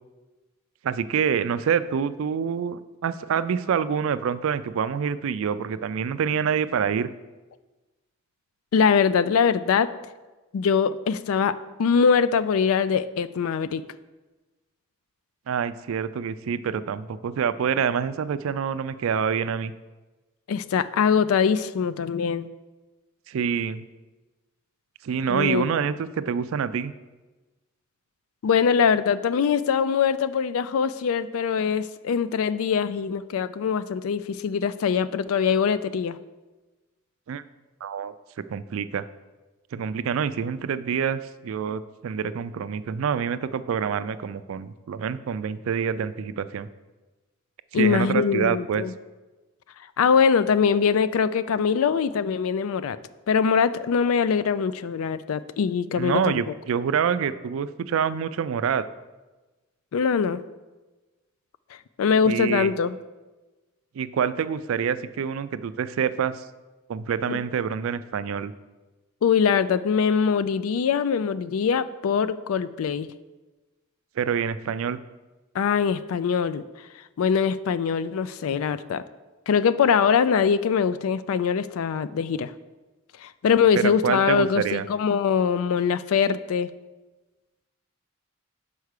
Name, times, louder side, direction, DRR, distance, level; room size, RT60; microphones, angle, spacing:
voice 1, 0.8-7.1 15.5-19.7 23.3-23.8 25.0-26.9 37.3-37.4 37.8-38.1 38.5-39.0 39.7-46.7 47.7-48.8 56.0-58.8 62.3-62.7 64.0-66.4 66.9-68.5 74.2-75.0 83.7-84.8, right 7 dB, 75° right, 14 dB, 0.3 m, -26 dB
voice 2, 8.7-9.9 10.5-13.8 20.5-22.5 25.3-25.8 28.4-36.2 47.7-48.9 50.0-53.0 53.3-56.4 59.9-60.4 61.7-63.0 67.3-67.4 69.2-73.1 75.5-79.0 79.5-82.5 83.2-86.7, left 6 dB, 80° left, 15 dB, 0.4 m, -23 dB
5.6 x 4.7 x 6.4 m, 1.2 s
head